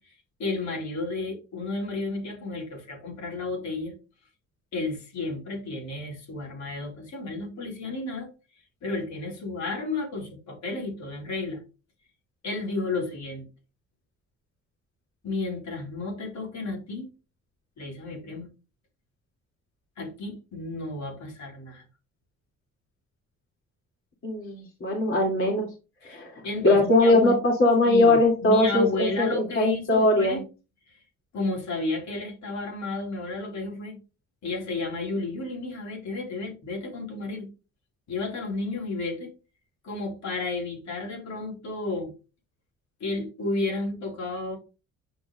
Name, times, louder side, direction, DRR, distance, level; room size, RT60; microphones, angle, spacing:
voice 1, 0.4-3.9 4.7-8.3 8.8-11.6 12.4-13.5 15.2-17.1 17.8-18.5 20.0-21.8 26.0-27.4 27.8-30.4 31.3-34.0 34.4-37.5 38.1-39.3 39.8-42.1 43.0-44.6, left 2 dB, 65° left, 3.9 m, -32 dB
voice 2, 24.2-25.7 26.0-30.4, left 2 dB, 45° left, 2.8 m, -21 dB
8.1 x 5.8 x 2.5 m
cardioid pair, 90°, 30 cm